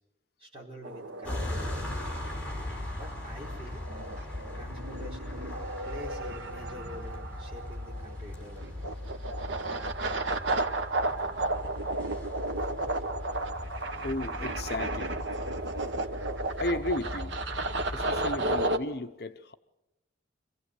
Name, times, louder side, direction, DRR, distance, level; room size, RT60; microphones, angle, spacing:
voice 1, 0.4-1.9 2.9-3.8 4.5-5.4 5.8-8.9, equal, 30° right, 4.7 m, -46 dB
sound 1, 0.8-18.8, right 2 dB, 80° right, 1.2 m, -34 dB
sound 2, 1.2-18.6, left 1 dB, 10° left, 5.4 m, -39 dB
voice 2, 14.0-15.2 16.6-17.3 17.9-19.5, left 1 dB, 55° left, 0.9 m, -34 dB
26.0 x 16.0 x 8.3 m
head